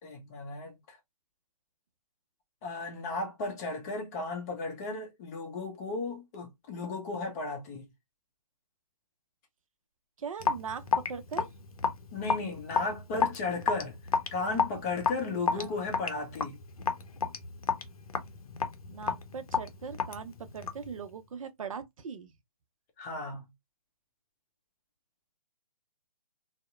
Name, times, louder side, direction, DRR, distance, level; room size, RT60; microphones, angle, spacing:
voice 1, 0.0-1.0 2.6-7.9 12.1-14.0 14.3-16.6 23.0-23.5, left 3 dB, 25° left, 0.7 m, -35 dB
voice 2, 10.2-11.5 15.5-15.7 18.9-22.3, right 6 dB, 60° right, 0.5 m, -40 dB
Raindrop / Drip, 10.4-20.9, left 6 dB, 70° left, 0.6 m, -31 dB
2.7 x 2.0 x 2.4 m
figure-of-eight pair, 140°, 19 cm